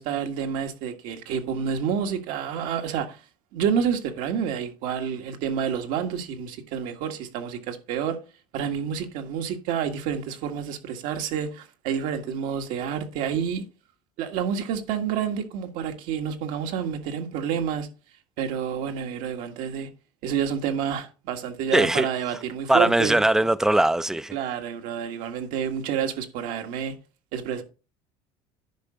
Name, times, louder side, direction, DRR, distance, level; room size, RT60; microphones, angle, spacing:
voice 1, 0.0-3.2 3.5-8.2 8.5-13.6 14.2-17.9 18.4-19.9 20.2-23.2 24.3-26.9 27.3-27.6, right 8 dB, 75° right, 1.7 m, -29 dB
voice 2, 21.7-22.1 22.7-24.4, right 1 dB, 5° right, 0.5 m, -20 dB
10.5 x 5.4 x 5.0 m
supercardioid pair, 100°, 13 cm